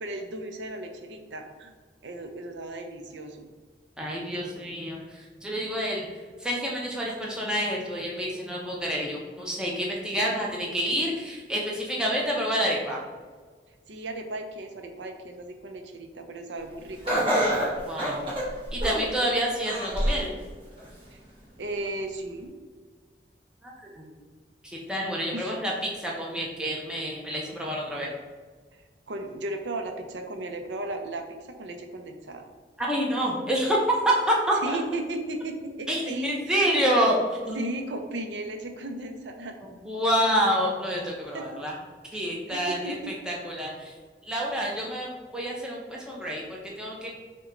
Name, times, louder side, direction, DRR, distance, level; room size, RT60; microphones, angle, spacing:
voice 1, 0.0-1.7 2.0-3.5 13.9-17.3 21.1-21.2 21.6-22.5 25.3-25.6 28.7-31.3 31.6-32.5 34.6-36.7 37.5-39.5 41.3-41.6 42.1-43.1, right 2 dB, 85° right, 5 dB, 0.6 m, -36 dB
voice 2, 4.0-6.1 6.4-13.0 17.9-18.3 18.7-20.3 23.6-24.0 24.6-28.1 32.8-34.8 35.9-37.2 37.5-37.6 39.8-41.8 42.1-42.9 43.3-43.9 44.2-47.1, equal, 5° right, -4 dB, 0.6 m, -28 dB
Laughter, 17.1-19.2 19.7-20.3 20.8-20.9 21.8-21.9, equal, 30° right, 1.2 m, -26 dB
5.9 x 2.2 x 3.7 m, 1.5 s
head